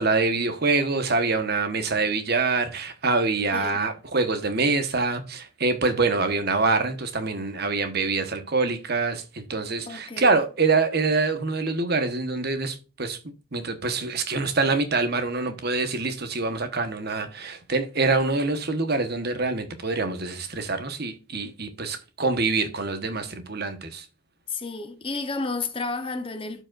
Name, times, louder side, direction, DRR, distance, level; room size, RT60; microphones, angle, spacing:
voice 1, 0.0-13.2 13.5-24.0, right 3 dB, 50° right, 1.2 m, -25 dB
voice 2, 3.5-3.8 9.9-10.4 24.5-26.6, left 3 dB, 25° left, 0.8 m, -31 dB
12.5 x 5.0 x 2.5 m
head